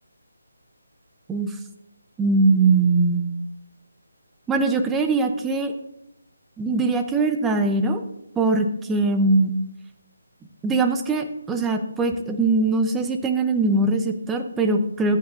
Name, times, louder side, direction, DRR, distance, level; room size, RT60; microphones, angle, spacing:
voice 1, 2.2-3.3 4.5-5.7 6.6-8.0 8.4-9.5 10.6-15.2, right 3 dB, 10° right, 6 dB, 0.7 m, -21 dB
14.5 x 8.1 x 2.6 m, 0.88 s
figure-of-eight pair, 160°, 0 cm